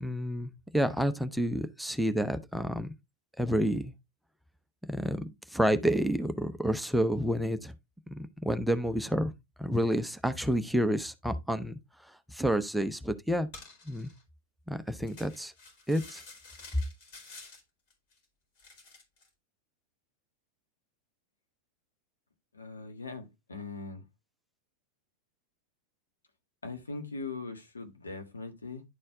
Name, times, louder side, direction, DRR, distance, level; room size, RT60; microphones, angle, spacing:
voice 1, 0.0-2.9 3.4-3.9 4.9-7.7 8.1-9.3 9.6-11.8 12.3-13.5 13.9-14.1 14.7-15.5 15.9-16.2, equal, ahead, 0.7 m, -29 dB
sound 1, 13.5-14.2 15.1-17.6 17.9-18.2 18.6-19.3, left 3 dB, 50° left, 3.6 m, -50 dB
voice 2, 22.5-24.0 26.6-28.8, left 3 dB, 75° left, 1.4 m, -40 dB
11.0 x 4.4 x 3.4 m
figure-of-eight pair, 90°, 0 cm